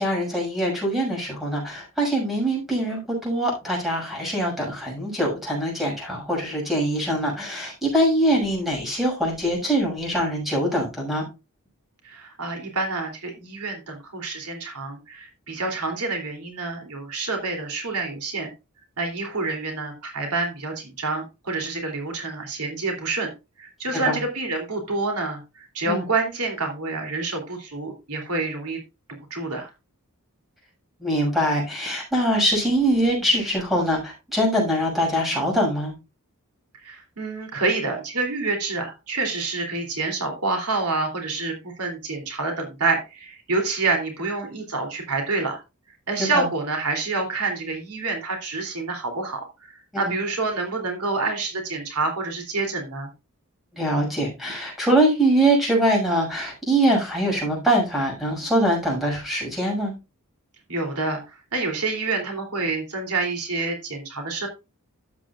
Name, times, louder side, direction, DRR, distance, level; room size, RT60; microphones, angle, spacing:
voice 1, 0.0-11.3 23.9-24.2 25.9-26.0 31.0-35.9 46.2-46.5 53.7-59.9, right 1 dB, ahead, -2 dB, 6.5 m, -23 dB
voice 2, 12.0-18.5 19.0-23.3 23.6-28.8 29.3-29.7 36.8-45.6 46.1-53.1 60.7-61.2 61.5-64.5, right 3 dB, 85° right, 3 dB, 3.2 m, -27 dB
12.5 x 8.7 x 2.5 m, 0.26 s
head